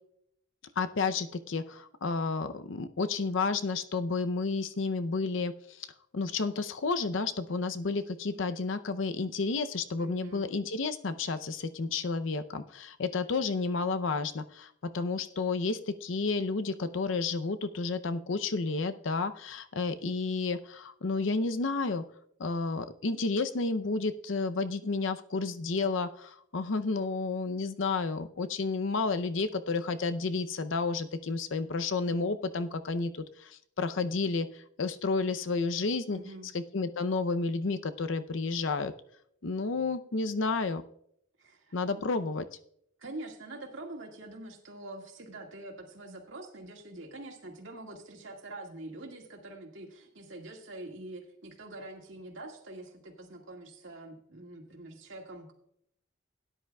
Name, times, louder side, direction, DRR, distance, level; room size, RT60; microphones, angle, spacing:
voice 1, 0.8-5.9 6.1-22.0 22.4-36.2 36.5-38.9 39.4-40.8 41.7-42.4, left 4 dB, 75° left, 10 dB, 0.6 m, -31 dB
voice 2, 10.0-10.5 36.1-36.5 41.4-42.0 43.0-55.5, right 2 dB, 80° right, 1 dB, 1.9 m, -45 dB
17.0 x 10.0 x 2.3 m, 0.71 s
head